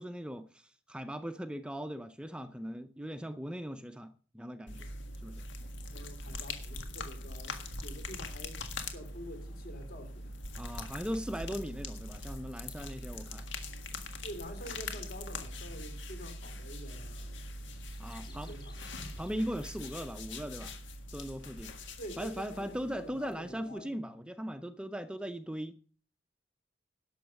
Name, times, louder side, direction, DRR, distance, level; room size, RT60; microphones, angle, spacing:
voice 1, 0.0-4.9 5.2-5.4 10.6-13.5 18.0-18.5 19.2-20.7 21.1-21.7 22.2-25.8, equal, 5° right, 0.5 m, -39 dB
sound 1, 4.7-23.6, left 2 dB, 85° left, 1.7 m, -42 dB
voice 2, 5.9-10.3 14.2-17.4 18.3-18.9 22.0-24.0, equal, 55° left, 2.9 m, -47 dB
sound 2, 17.9-20.8, left 4 dB, 25° left, 2.2 m, -61 dB
11.5 x 7.2 x 6.3 m
head